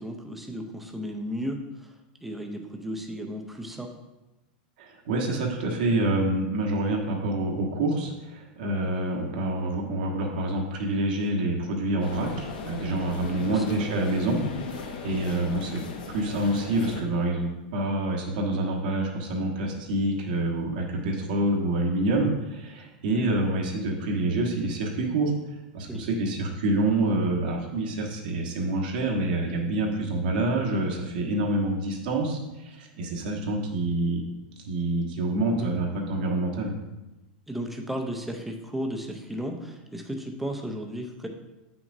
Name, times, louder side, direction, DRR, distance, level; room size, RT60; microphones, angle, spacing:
voice 1, 0.0-1.9 2.2-3.9 13.5-13.9 25.9-26.1 35.6-35.7 37.5-41.3, equal, 5° right, 3 dB, 0.6 m, -34 dB
voice 2, 4.8-15.8 16.1-25.3 25.7-34.2 34.6-36.7, right 2 dB, 70° right, 0 dB, 1.3 m, -27 dB
sound 1, 12.0-17.0, left 4 dB, 70° left, 1.0 m, -37 dB
8.3 x 5.9 x 2.7 m, 1.0 s
supercardioid pair, 165°, 5 cm